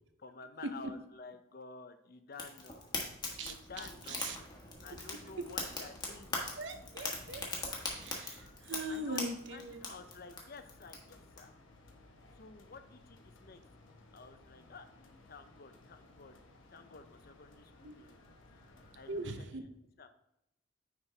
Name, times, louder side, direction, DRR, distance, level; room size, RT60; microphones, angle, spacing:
voice 1, 0.2-2.8 3.4-4.3 4.8-6.4 8.9-11.5 12.3-13.6 14.1-14.9 15.3-16.3 16.7-18.2 18.5-19.7 20.0-20.1, left 4 dB, 50° left, 9 dB, 0.6 m, -52 dB
Fire, 2.3-11.4, left 3 dB, 20° left, 1.3 m, -41 dB
voice 2, 3.4-4.4 4.9-5.1 5.4-5.5 6.6-9.9 17.8-18.0 19.1-19.7, right 2 dB, 60° right, 7 dB, 0.7 m, -42 dB
sound 1, 5.1-19.3, left 2 dB, 70° left, 1.1 m, -59 dB
9.3 x 4.5 x 3.3 m, 0.83 s
head